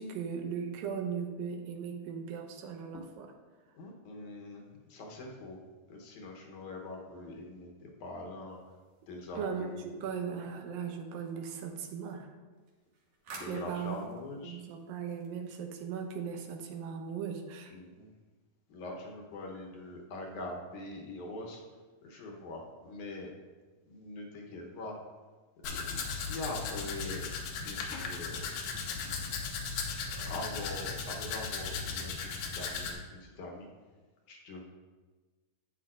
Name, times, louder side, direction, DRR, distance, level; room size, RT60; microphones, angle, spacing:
voice 1, 0.0-3.3 9.4-12.3 13.4-14.1 14.4-17.8, right 6 dB, 85° right, 3 dB, 2.7 m, -38 dB
voice 2, 3.8-5.6 5.9-8.6 9.1-9.9 13.3-14.6 17.7-18.1 18.7-21.6 22.0-23.3 23.9-25.0 25.7-28.5 28.9-29.2 30.1-33.7 34.3-34.6, left 2 dB, 70° left, 1 dB, 2.2 m, -43 dB
sound 1, 8.5-10.2 12.5-15.8, right 3 dB, 65° right, 2.2 m, -53 dB
Domestic sounds home sounds, 25.6-32.9, left 5 dB, 85° left, 2.7 m, -37 dB
10.5 x 9.0 x 2.5 m, 1.3 s
omnidirectional pair, 3.9 m